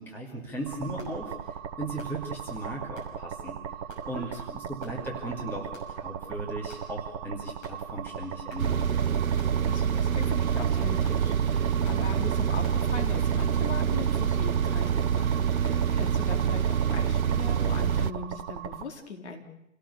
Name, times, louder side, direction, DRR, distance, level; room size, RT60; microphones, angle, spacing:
voice 1, 0.0-3.6 4.0-8.9, right 1 dB, 5° left, -2 dB, 2.5 m, -37 dB
sound 1, 0.7-18.8, right 8 dB, 25° right, 1.1 m, -38 dB
sound 2, 1.0-1.2 2.0-2.2 3.0-3.1 3.9-4.1 4.8-5.0 5.7-6.0 6.7-6.9 7.6-7.8 8.5-8.7 9.4-9.6 10.2-10.4 11.0-11.2 11.8-12.1 12.6-12.8 13.4-13.6 14.1-14.3 14.8-15.0 15.6-15.8, left 2 dB, 25° left, 6.3 m, -50 dB
voice 2, 4.1-4.4 9.6-19.4, left 5 dB, 55° left, 3 dB, 4.0 m, -40 dB
sound 3, 8.6-18.1, right 8 dB, 85° right, 0.9 m, -26 dB
28.5 x 17.5 x 7.0 m, 0.85 s
hypercardioid pair, 155°, 41 cm